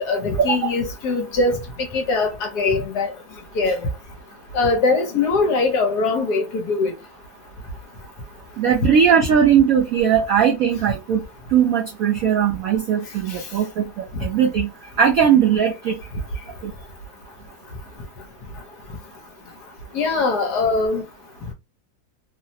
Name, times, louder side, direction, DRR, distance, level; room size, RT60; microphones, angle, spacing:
voice 1, 0.0-1.6 1.9-3.1 3.6-3.8 4.5-6.9 19.9-21.0, left 3 dB, 65° left, 1.2 m, -21 dB
voice 2, 8.6-11.2 11.5-14.7 15.0-16.0 16.6-16.7, right 8 dB, 75° right, 0.8 m, -19 dB
3.1 x 2.0 x 2.7 m
omnidirectional pair, 2.1 m